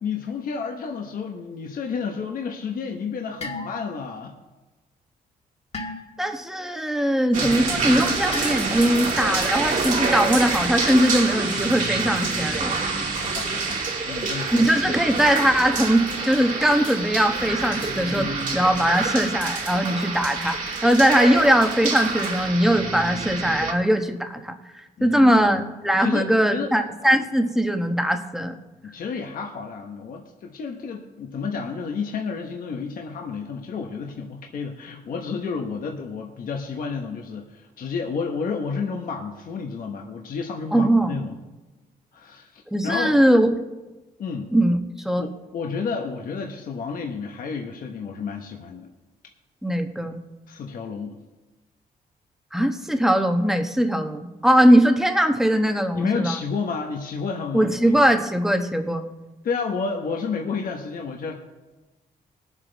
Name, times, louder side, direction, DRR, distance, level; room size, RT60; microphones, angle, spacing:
voice 1, 0.0-4.3 13.1-15.1 25.0-25.7 26.0-26.7 28.8-41.4 42.1-43.5 44.2-44.5 45.2-48.9 50.5-51.2 55.9-58.0 59.4-61.4, left 5 dB, 65° left, 2 dB, 1.2 m, -31 dB
sound 1, 3.4-4.1 5.7-6.3 8.3-9.0 10.8-11.4 12.5-12.8, left 3 dB, 40° left, 1.7 m, -36 dB
voice 2, 6.2-12.8 14.5-24.6 25.0-28.5 40.7-41.1 42.7-43.5 44.5-44.8 45.0-45.3 49.6-50.2 52.5-56.3 57.5-59.0, equal, 5° right, 5 dB, 1.1 m, -20 dB
sound 2, 7.3-23.7, right 4 dB, 55° right, 2.6 m, -27 dB
19.5 x 7.3 x 4.1 m, 1.1 s
cardioid pair, 100°, 16 cm